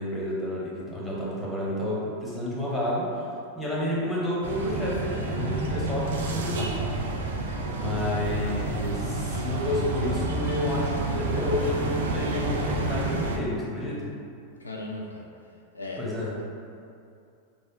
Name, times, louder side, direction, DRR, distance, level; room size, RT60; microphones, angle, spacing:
voice 1, 0.0-3.3 3.5-6.9 7.7-14.1 16.0-16.4, left 1 dB, 5° left, -7 dB, 0.9 m, -30 dB
sound 1, 4.4-13.4, right 2 dB, 65° right, 0.4 m, -29 dB
voice 2, 14.6-15.2 15.7-16.0, left 2 dB, 80° left, -1 dB, 0.3 m, -36 dB
3.4 x 2.1 x 3.9 m, 2.5 s
figure-of-eight pair, 90°, 0 cm